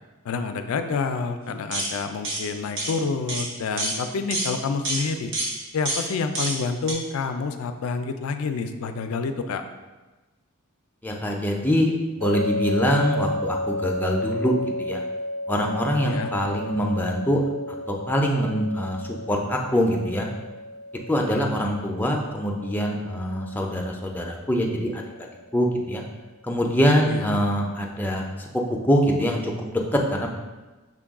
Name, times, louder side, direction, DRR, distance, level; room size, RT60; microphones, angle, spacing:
voice 1, 0.2-5.3 5.7-9.6 16.0-16.3 27.1-27.5, left 4 dB, 75° left, 7 dB, 0.4 m, -28 dB
sound 1, 1.7-1.9 2.2-2.4 2.8-2.9 3.3-3.5 3.8-4.0 4.3-4.5 4.8-5.0 5.3-5.5 5.9-6.0 6.3-6.6 6.9-7.0, right 2 dB, 60° right, 0.9 m, -27 dB
voice 2, 11.0-15.0 15.5-17.4 17.9-19.0 19.3-20.3 21.1-25.0 25.5-26.0 26.4-28.3 28.9-30.3, equal, 10° left, 0 dB, 0.4 m, -24 dB
sound 2, 12.2-25.3, left 1 dB, 90° right, 0.8 m, -33 dB
6.0 x 2.3 x 3.5 m, 1.2 s
head